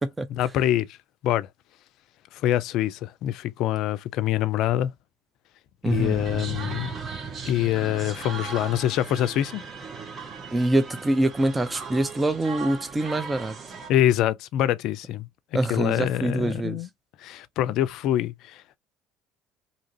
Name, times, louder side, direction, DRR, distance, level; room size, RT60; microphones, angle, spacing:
voice 1, 0.3-0.9 1.2-1.5 2.3-4.9 5.8-6.9 7.4-9.6 13.9-15.3 15.7-16.9 17.2-18.8, left 12 dB, 65° left, 0.4 m, -25 dB
voice 2, 5.8-6.2 10.5-13.6 15.5-16.8, right 2 dB, 20° right, 0.4 m, -25 dB
sound 1, 5.9-13.9, right 5 dB, 45° right, 0.9 m, -37 dB
2.7 x 2.5 x 2.9 m
hypercardioid pair, 65°, 0 cm